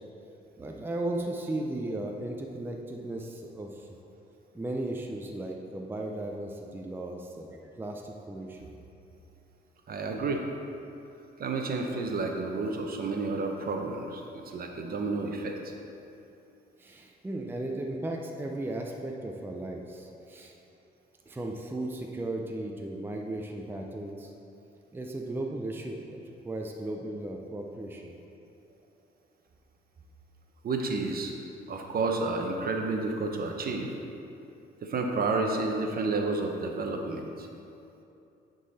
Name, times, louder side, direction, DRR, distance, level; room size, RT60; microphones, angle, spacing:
voice 1, 0.6-3.9 4.5-8.6 16.8-20.5 21.3-24.3 24.9-28.1, right 1 dB, 10° right, 1 dB, 0.5 m, -36 dB
voice 2, 9.9-10.4 11.4-15.7 30.6-31.3 31.7-33.9 34.8-37.5, right 3 dB, 50° right, 2 dB, 0.8 m, -30 dB
9.2 x 3.9 x 4.1 m, 2.8 s
cardioid pair, 90°, 20 cm